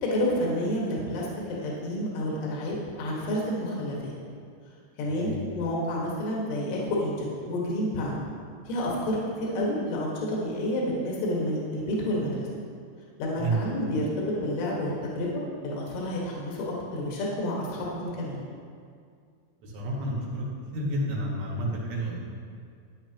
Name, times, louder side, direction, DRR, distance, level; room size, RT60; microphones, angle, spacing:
voice 1, 0.0-4.1 5.0-8.2 8.7-12.5 13.2-15.3 15.6-18.4, left 1 dB, 75° left, -4 dB, 4.1 m, -29 dB
voice 2, 19.6-20.5 20.7-22.2, right 1 dB, 75° right, -4 dB, 4.2 m, -30 dB
14.0 x 10.0 x 3.0 m, 2.3 s
omnidirectional pair, 5.6 m